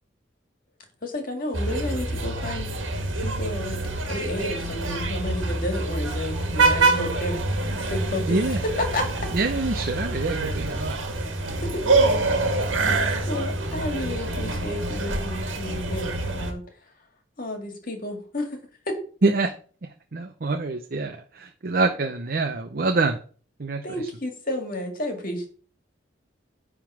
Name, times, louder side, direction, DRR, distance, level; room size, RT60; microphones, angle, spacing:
voice 1, 1.0-2.7 3.2-7.4 7.8-9.3 11.6-12.0 12.8-16.6 17.4-18.6 18.9-19.0 23.8-25.5, left 1 dB, 45° left, 4 dB, 2.0 m, -31 dB
sound 1, 1.5-16.5, right 2 dB, 80° right, 1.6 m, -26 dB
voice 2, 8.3-8.6 9.3-11.0 19.2-19.5 20.1-23.2 23.6-23.8, right 3 dB, 50° right, 5 dB, 0.7 m, -25 dB
9.7 x 3.7 x 6.0 m, 0.41 s
head